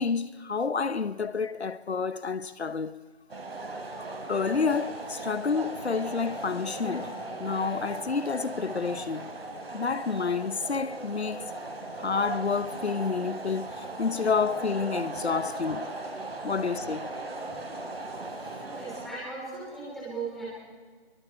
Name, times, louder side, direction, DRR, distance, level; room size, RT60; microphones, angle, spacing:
voice 1, 0.0-3.0 4.3-7.1 7.4-9.3 9.7-11.5 12.0-15.9 16.4-17.1, left 5 dB, 85° left, 1.0 m, -29 dB
sound 1, 3.3-19.1, right 2 dB, 65° right, 4.4 m, -38 dB
voice 2, 18.7-20.5, right 4 dB, ahead, 3.1 m, -37 dB
27.5 x 23.0 x 4.4 m
figure-of-eight pair, 170°, 32 cm